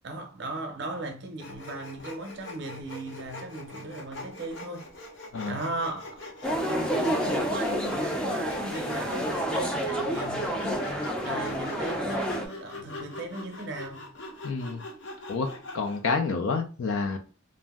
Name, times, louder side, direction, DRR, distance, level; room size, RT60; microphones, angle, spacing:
voice 1, 0.0-4.9 5.5-6.4 6.6-10.9 11.2-14.1, right 2 dB, 60° right, 0.6 m, -37 dB
Sawing, 1.4-16.1, left 2 dB, 65° left, 0.8 m, -43 dB
sound 1, 6.4-12.5, equal, 5° left, 0.4 m, -29 dB
voice 2, 14.4-14.8 15.3-17.2, left 4 dB, 80° left, 0.4 m, -29 dB
2.5 x 2.0 x 3.4 m
head